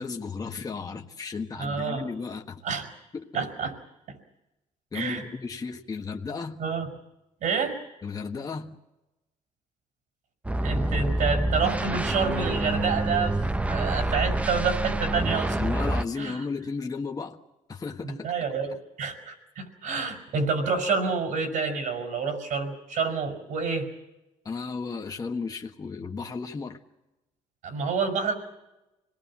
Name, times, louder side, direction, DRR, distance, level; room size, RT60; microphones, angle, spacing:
voice 1, 0.0-2.6 3.1-3.3 4.9-6.7 8.0-8.8 15.5-17.4 17.7-18.3 24.4-26.8, left 4 dB, 25° left, 1.5 m, -34 dB
voice 2, 1.6-2.0 2.6-2.9 3.3-3.7 4.1-4.2 4.9-5.2 6.6-6.9 7.4-7.8 10.6-15.6 16.2-16.3 18.0-23.9 27.6-28.3, right 5 dB, 75° right, 5.7 m, -28 dB
sound 1, 10.4-16.0, right 1 dB, 10° right, 0.7 m, -27 dB
26.5 x 19.5 x 7.6 m
cardioid pair, 110°, 13 cm